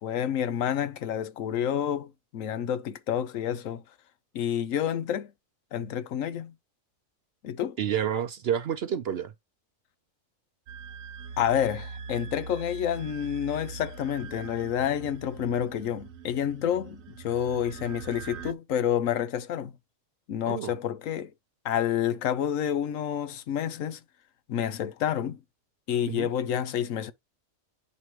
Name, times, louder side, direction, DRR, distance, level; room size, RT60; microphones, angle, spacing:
voice 1, 0.0-3.8 4.3-5.3 5.7-6.5 7.4-7.8 11.4-19.7 20.3-21.3 21.6-24.0 24.5-25.4 25.9-27.1, left 9 dB, 75° left, 1.1 m, -29 dB
voice 2, 7.8-9.3 20.5-20.7 26.1-26.3, right 9 dB, 60° right, 0.7 m, -29 dB
sound 1, 10.7-18.5, right 5 dB, 75° right, 1.0 m, -42 dB
9.4 x 4.6 x 3.1 m
omnidirectional pair, 1.4 m